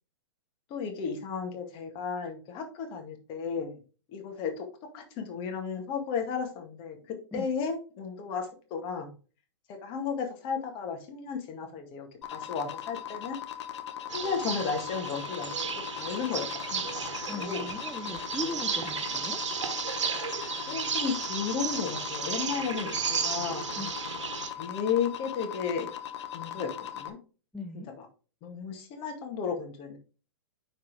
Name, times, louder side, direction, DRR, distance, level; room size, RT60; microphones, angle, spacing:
voice 1, 0.7-3.8 4.1-4.7 4.9-9.2 9.7-13.4 14.1-15.6 15.9-17.7 20.7-23.7 24.6-25.9 26.3-27.2 28.0-28.1 28.4-30.0, left 6 dB, 35° left, 3 dB, 2.0 m, -34 dB
sound 1, 12.2-27.1, left 10 dB, 70° left, 1.2 m, -39 dB
sound 2, 14.1-24.5, right 6 dB, 85° right, 1.2 m, -34 dB
voice 2, 16.9-19.4 22.5-22.8 23.8-23.9 27.5-27.9, left 2 dB, ahead, 1 dB, 0.7 m, -39 dB
9.7 x 4.3 x 3.4 m, 0.36 s
hypercardioid pair, 135°, 15 cm